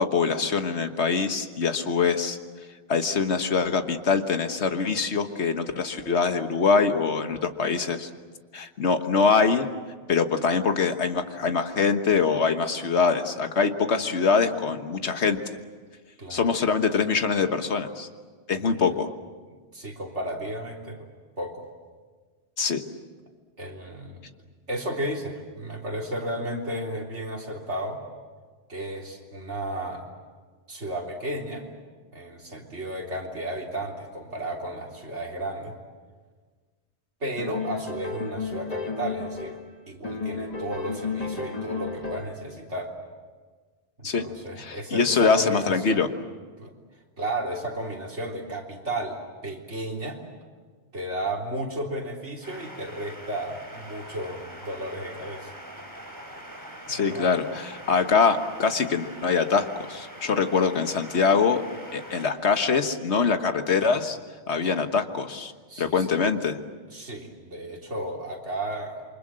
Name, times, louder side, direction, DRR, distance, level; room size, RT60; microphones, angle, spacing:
voice 1, 0.0-2.4 2.9-8.1 8.5-9.7 10.1-15.4 16.3-18.1 18.5-19.1 22.6-22.8 44.0-44.2 44.6-46.1 56.9-61.6 61.9-64.2 64.5-65.5 65.8-66.6, left 5 dB, 70° left, 7 dB, 1.6 m, -24 dB
voice 2, 18.6-18.9 19.7-21.1 21.4-21.7 23.6-24.2 24.7-28.0 28.7-30.0 30.7-31.7 32.1-35.8 37.2-39.6 39.9-42.9 44.0-46.0 46.6-46.7 47.2-49.2 49.4-50.2 50.9-55.5 56.9-57.3 64.6-64.7 65.7-66.1 66.9-69.0, right 1 dB, 85° right, 0 dB, 3.9 m, -33 dB
sound 1, 37.4-39.7 40.0-42.5, left 4 dB, 35° left, 1.5 m, -33 dB
sound 2, 52.4-62.3, equal, 15° right, 4.8 m, -43 dB
28.0 x 24.5 x 7.7 m, 1.5 s
omnidirectional pair, 1.2 m